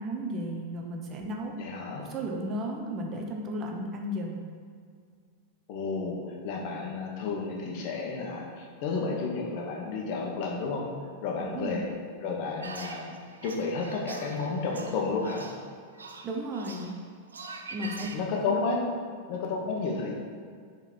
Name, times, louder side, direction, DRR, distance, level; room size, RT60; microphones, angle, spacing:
voice 1, 0.0-1.5 2.0-4.4 11.5-11.8 16.2-17.0 17.7-18.1 18.4-18.5, right 1 dB, 35° right, 1 dB, 0.9 m, -34 dB
voice 2, 1.6-2.0 5.7-10.9 11.2-11.9 12.2-13.1 13.4-15.5 18.0-18.9 19.3-20.1, left 4 dB, 55° left, -1 dB, 1.2 m, -31 dB
sound 1, 12.6-18.2, right 3 dB, 85° right, 0.5 m, -44 dB
4.9 x 3.9 x 5.3 m, 2.1 s
hypercardioid pair, 95°, 0 cm